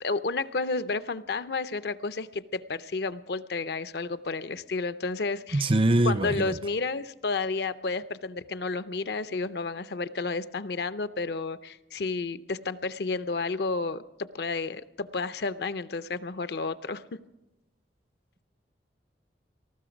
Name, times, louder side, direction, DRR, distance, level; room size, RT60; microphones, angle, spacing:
voice 1, 0.0-5.7 6.0-17.0, left 3 dB, 60° left, 0.5 m, -31 dB
voice 2, 5.5-6.6, right 1 dB, 30° right, 0.5 m, -23 dB
19.0 x 14.5 x 5.1 m
head